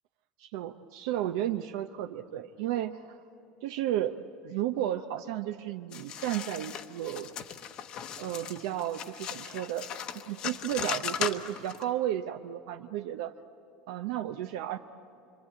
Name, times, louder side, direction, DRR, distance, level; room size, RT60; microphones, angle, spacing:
voice 1, 0.4-3.2 3.6-4.2 4.4-7.3 8.2-13.4 13.9-14.8, right 12 dB, 65° right, 7 dB, 0.8 m, -33 dB
sound 1, 5.9-11.8, left 9 dB, 35° left, 1.0 m, -37 dB
27.0 x 24.0 x 8.5 m, 2.8 s
cardioid pair, 165°, 2 cm